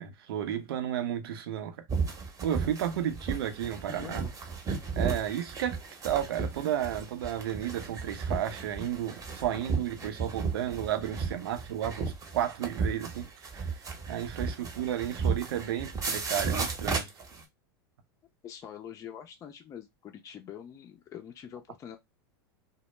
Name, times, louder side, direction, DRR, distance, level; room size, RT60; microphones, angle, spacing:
voice 1, 0.0-1.8 2.4-4.3 5.0-13.3 13.5-13.8 14.1-17.1, right 10 dB, 75° right, 0.6 m, -32 dB
sound 1, 1.9-17.4, right 5 dB, 25° right, 0.8 m, -34 dB
voice 2, 3.9-4.4 18.4-22.0, left 9 dB, 25° left, 0.4 m, -45 dB
2.0 x 2.0 x 3.1 m
hypercardioid pair, 110°, 13 cm